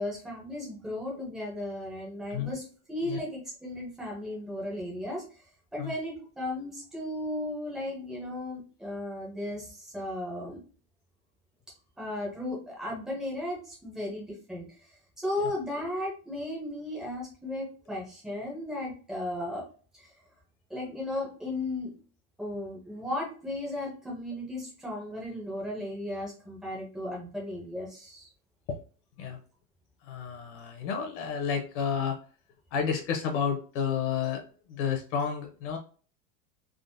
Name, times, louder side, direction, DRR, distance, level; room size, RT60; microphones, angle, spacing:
voice 1, 0.0-5.2 5.7-10.6 12.0-14.7 15.2-19.6 19.9-20.1 20.7-22.0 22.4-28.3, left 1 dB, ahead, -4 dB, 0.6 m, -35 dB
voice 2, 30.0-32.2 32.7-34.4 34.7-35.8, left 7 dB, 50° left, 3 dB, 0.8 m, -31 dB
3.6 x 2.0 x 2.5 m, 0.39 s
supercardioid pair, 160°, 47 cm